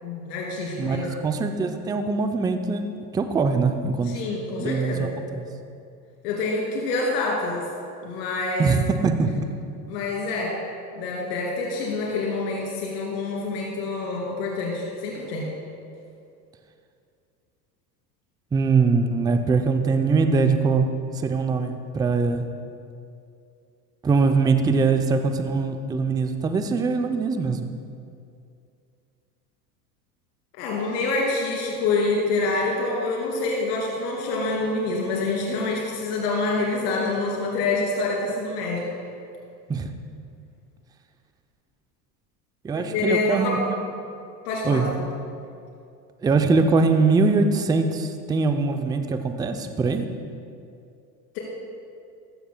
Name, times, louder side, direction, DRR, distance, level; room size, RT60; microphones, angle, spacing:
voice 1, 0.0-1.2 4.0-5.1 6.2-7.6 8.0-8.7 9.9-10.5 10.9-15.4 30.6-38.9 42.7-43.5 44.4-44.8, left 3 dB, 70° left, -3 dB, 2.7 m, -26 dB
voice 2, 0.8-2.9 3.1-4.2 4.6-5.4 8.6-9.5 18.5-20.9 21.2-22.5 24.0-27.7 39.7-39.9 42.6-43.6 44.6-44.9 46.2-50.1, right 4 dB, 10° right, 7 dB, 0.4 m, -22 dB
14.5 x 13.0 x 2.2 m, 2.5 s
hypercardioid pair, 95°, 50 cm